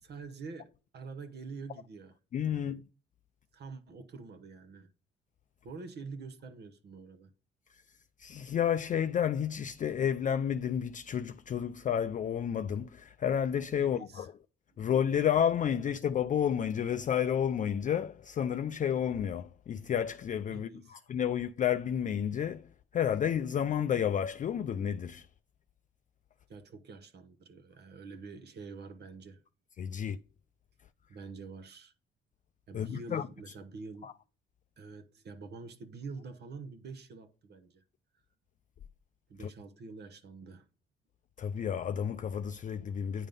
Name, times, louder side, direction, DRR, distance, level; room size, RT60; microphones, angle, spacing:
voice 1, 0.0-2.2 2.5-2.8 3.5-4.9 5.6-7.3 13.8-14.3 14.7-14.8 20.5-21.0 26.5-29.4 31.1-31.9 32.7-34.1 34.8-37.8 39.3-40.7, right 4 dB, 55° right, 1.0 m, -46 dB
voice 2, 2.3-2.8 8.2-14.3 14.8-22.7 22.9-25.3 29.8-30.2 32.7-33.3 34.0-34.1 41.4-43.3, left 9 dB, 40° left, 0.4 m, -31 dB
9.2 x 3.7 x 5.2 m
cardioid pair, 90°, 20 cm